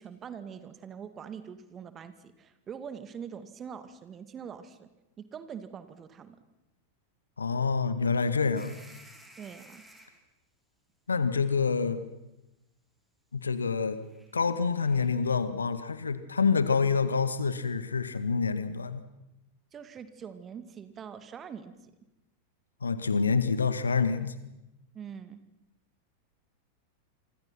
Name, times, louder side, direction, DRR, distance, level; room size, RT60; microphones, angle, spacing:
voice 1, 0.0-4.9 5.2-6.4 9.4-9.8 19.7-21.9 24.9-25.4, right 7 dB, 25° right, 12 dB, 2.3 m, -43 dB
voice 2, 7.4-8.7 11.1-12.0 13.3-14.0 14.3-19.0 22.8-24.3, left 5 dB, 75° left, 13 dB, 1.8 m, -27 dB
sound 1, 8.5-10.2 11.4-11.5 13.4-13.7 14.0-15.1, right 1 dB, ahead, 4.6 m, -54 dB
27.5 x 25.0 x 5.9 m, 0.94 s
figure-of-eight pair, 90°, 0 cm